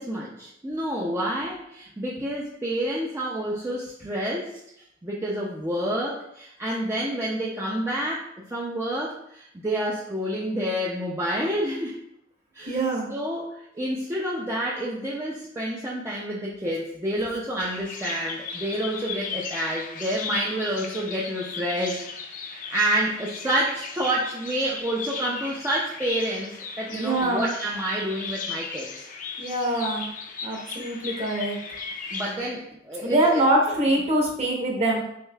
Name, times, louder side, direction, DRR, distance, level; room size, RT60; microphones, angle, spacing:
voice 1, 0.0-4.6 5.0-12.0 12.5-12.8 13.1-22.0 22.5-28.9 32.1-33.8, right 1 dB, 15° right, -4 dB, 0.5 m, -29 dB
voice 2, 12.7-13.1 26.9-27.5 29.4-30.1 30.4-31.6 33.0-35.0, right 1 dB, 30° right, -1 dB, 1.0 m, -24 dB
Bird vocalization bird call bird song, 17.6-32.4, left 5 dB, 40° left, 0.5 m, -36 dB
6.3 x 2.7 x 2.3 m, 0.75 s
head